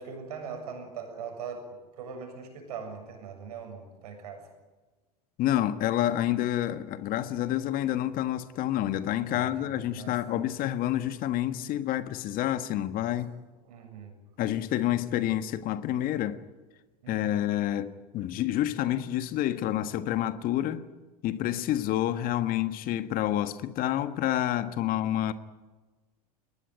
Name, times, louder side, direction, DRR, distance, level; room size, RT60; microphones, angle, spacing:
voice 1, 0.0-4.5 9.3-10.5 13.0-13.2 13.7-14.2 17.0-17.4, right 6 dB, 70° right, 7.4 m, -41 dB
voice 2, 5.4-13.3 14.4-16.4 17.1-20.9 21.2-25.3, left 12 dB, 45° left, 1.5 m, -28 dB
22.0 x 20.0 x 9.2 m
hypercardioid pair, 85°, 20 cm